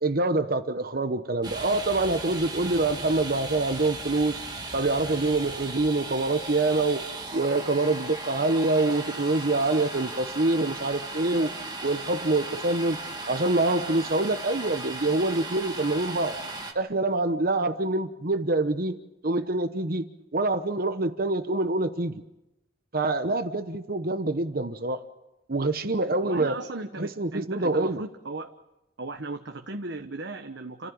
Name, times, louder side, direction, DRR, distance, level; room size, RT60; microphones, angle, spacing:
voice 1, 0.0-4.4 4.7-7.0 7.3-11.5 11.8-13.0 13.3-16.3 16.7-19.0 19.2-22.2 22.9-25.0 25.5-26.6 27.0-28.0, right 2 dB, 50° right, 9 dB, 1.0 m, -25 dB
Domestic sounds home sounds, 1.4-16.7, right 3 dB, 25° right, 2.3 m, -37 dB
voice 2, 26.2-28.5 29.0-30.9, right 2 dB, 70° right, 5 dB, 1.2 m, -36 dB
30.0 x 15.0 x 8.8 m, 0.94 s
head